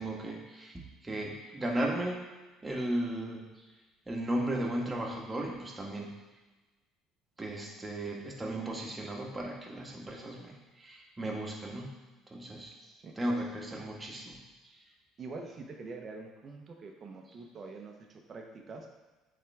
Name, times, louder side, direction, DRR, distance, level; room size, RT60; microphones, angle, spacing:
voice 1, 0.0-2.2 2.6-3.5 4.1-6.1 7.4-11.9 12.3-12.8 13.2-14.4 14.6-14.7, right 1 dB, 20° right, -1 dB, 1.6 m, -35 dB
voice 2, 12.8-13.1 15.2-18.9, right 3 dB, 40° right, 3 dB, 0.9 m, -45 dB
8.4 x 3.8 x 3.5 m, 1.2 s
supercardioid pair, 80°, 0 cm